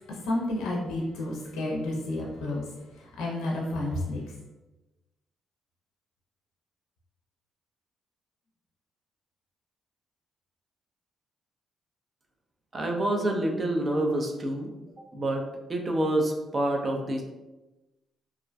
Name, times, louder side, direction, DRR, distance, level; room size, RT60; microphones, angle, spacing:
voice 1, 0.0-4.2, left 1 dB, 85° left, -2 dB, 0.4 m, -31 dB
voice 2, 12.7-14.7 15.1-17.2, right 1 dB, 35° right, 2 dB, 0.4 m, -27 dB
2.4 x 2.1 x 2.4 m, 1.1 s
cardioid pair, 90°, 0 cm